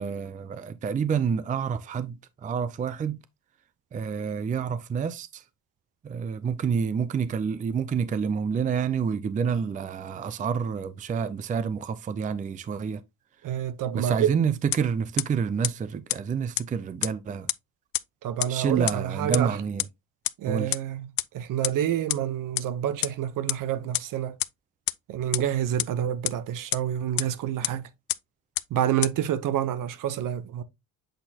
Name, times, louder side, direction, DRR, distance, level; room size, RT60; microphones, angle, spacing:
voice 1, 0.0-3.2 3.9-5.4 6.0-13.0 13.9-17.5 18.5-19.8 20.5-20.8, right 6 dB, 20° right, 0.4 m, -28 dB
voice 2, 13.4-14.3 18.2-19.6 20.4-24.4 25.1-27.9 28.7-30.6, right 10 dB, 60° right, 0.9 m, -28 dB
sound 1, 14.7-14.8 15.2-15.3 15.6-15.7 16.1-16.2 16.6-16.7 17.0-17.1 17.5-17.6 17.9-18.0 18.4-18.5 18.9-19.0 19.3-19.4 19.8-19.9 20.2-20.3 20.7-20.8 21.2-21.3 21.6-21.7 22.1-22.2 22.6-22.7 23.0-23.1 23.5-23.6 23.9-24.0 24.4-24.5 24.9-25.0 25.3-25.4 25.8-25.9 26.3-26.4 26.7-26.8 27.2-27.3 27.6-27.7 28.1-28.2 28.6-28.7 29.0-29.1, left 18 dB, 70° left, 0.5 m, -25 dB
7.9 x 4.3 x 2.8 m
cardioid pair, 110°, 36 cm